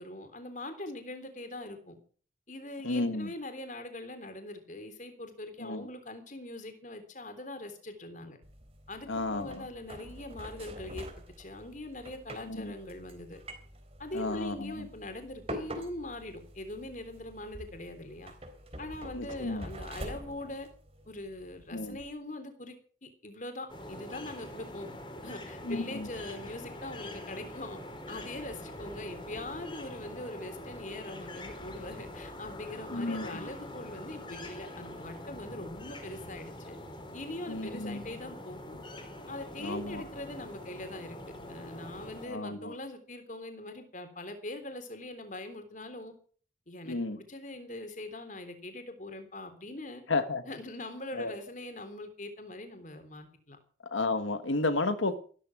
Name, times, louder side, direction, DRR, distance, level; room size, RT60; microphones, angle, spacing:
voice 1, 0.0-2.0 2.5-8.4 8.9-11.1 11.4-13.4 14.0-18.3 18.8-20.7 21.1-22.7 23.0-24.9 25.2-27.8 28.1-36.8 37.1-38.8 39.3-41.2 41.5-46.1 46.7-50.0 50.4-53.6, left 1 dB, 40° left, 8 dB, 3.5 m, -42 dB
voice 2, 2.8-3.3 5.6-5.8 9.1-9.5 12.5-12.7 14.1-14.7 19.1-19.6 21.7-22.0 25.7-26.1 32.9-33.3 37.5-38.0 39.6-40.0 42.3-42.7 46.9-47.2 50.1-50.4 51.1-51.3 53.9-55.1, left 2 dB, 85° left, 9 dB, 1.5 m, -32 dB
sound 1, 8.4-22.1, equal, 30° right, 3.6 m, -46 dB
sound 2, 23.7-42.3, left 1 dB, 25° left, 3.7 m, -44 dB
15.0 x 13.5 x 6.0 m, 0.43 s
head